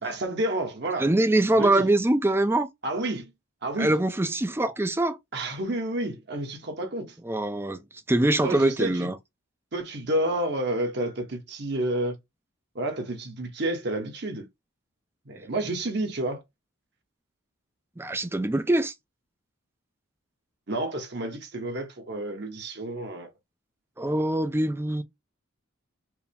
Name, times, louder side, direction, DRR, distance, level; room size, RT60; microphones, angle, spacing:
voice 1, 0.0-1.1 1.5-1.9 2.8-3.3 3.6-3.9 5.3-7.2 8.4-9.1 9.7-12.2 12.7-14.5 15.3-16.4 20.7-23.3, right 1 dB, 50° right, 1.0 m, -30 dB
voice 2, 1.0-2.7 3.8-5.2 7.2-7.8 8.1-9.2 18.0-18.9 24.0-25.0, right 1 dB, 10° right, 0.4 m, -23 dB
4.6 x 2.0 x 3.5 m
head